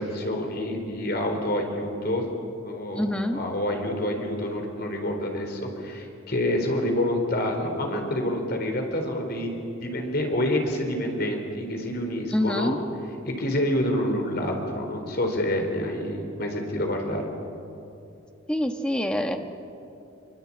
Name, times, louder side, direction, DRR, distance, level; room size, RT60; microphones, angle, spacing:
voice 1, 0.0-2.3 2.6-3.1 3.3-12.8 13.3-17.2, left 1 dB, 50° left, 3 dB, 4.3 m, -27 dB
voice 2, 3.0-3.4 12.3-12.8 18.5-19.4, left 1 dB, 5° left, 5 dB, 1.4 m, -25 dB
24.5 x 24.0 x 8.8 m, 2.7 s
head